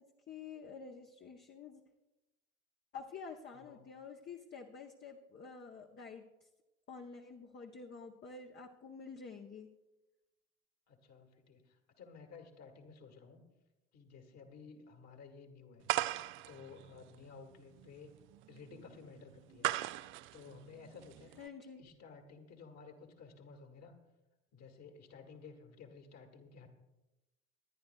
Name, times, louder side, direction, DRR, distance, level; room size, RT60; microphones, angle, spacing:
voice 1, 0.0-1.8 2.9-6.5 6.9-9.7 21.4-21.8, left 5 dB, 30° left, 3 dB, 0.8 m, -49 dB
voice 2, 3.5-3.9 10.9-13.4 13.9-16.2 16.5-18.1 18.5-19.7 20.3-21.3 21.6-24.0 24.5-26.7, left 5 dB, 50° left, 4 dB, 1.9 m, -54 dB
sound 1, 15.9-21.5, right 16 dB, 35° right, 0.4 m, -39 dB
25.0 x 10.5 x 2.3 m, 1.0 s
figure-of-eight pair, 60°, 36 cm